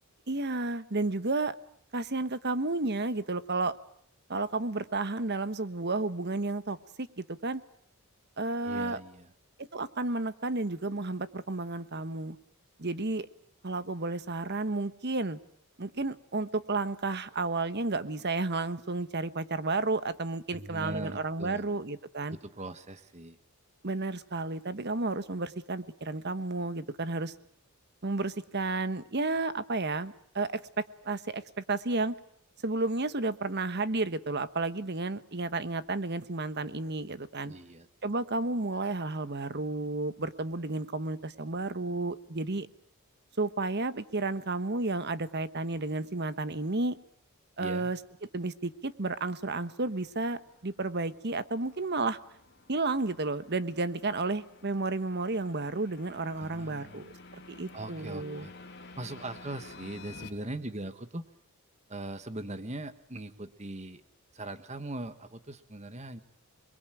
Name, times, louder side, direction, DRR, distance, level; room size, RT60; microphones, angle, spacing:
voice 1, 0.3-1.5 1.9-3.7 4.3-7.6 8.4-9.0 9.6-12.4 12.8-13.3 13.6-15.4 15.8-22.4 23.8-27.3 28.0-32.1 32.6-37.5 38.0-42.7 43.4-47.0 47.6-48.0 48.3-52.2 52.7-58.5, right 3 dB, 50° right, 13 dB, 1.3 m, -32 dB
voice 2, 8.6-9.3 20.5-21.8 22.3-23.4 37.4-38.1 47.6-47.9 56.4-57.0 57.7-58.5 59.0-61.2 61.9-64.0 64.3-66.2, right 2 dB, 30° right, 11 dB, 1.5 m, -40 dB
sound 1, 48.8-60.3, left 3 dB, 50° left, 3.0 m, -52 dB
27.5 x 22.0 x 9.2 m, 0.66 s
head